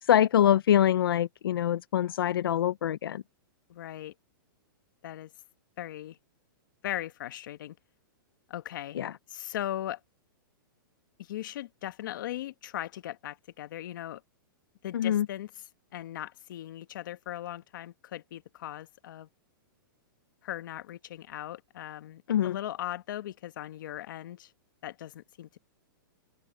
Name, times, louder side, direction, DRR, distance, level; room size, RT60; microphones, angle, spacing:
voice 1, 0.0-3.2 8.9-9.1 14.9-15.3 22.3-22.6, left 10 dB, 85° left, 0.7 m, -24 dB
voice 2, 3.7-4.1 5.0-5.3 5.8-6.2 6.8-7.8 8.5-9.0 9.3-10.0 11.2-14.2 14.8-15.5 15.9-19.3 20.4-24.5 24.8-25.6, left 12 dB, 60° left, 1.4 m, -38 dB
hypercardioid pair, 155°, 12 cm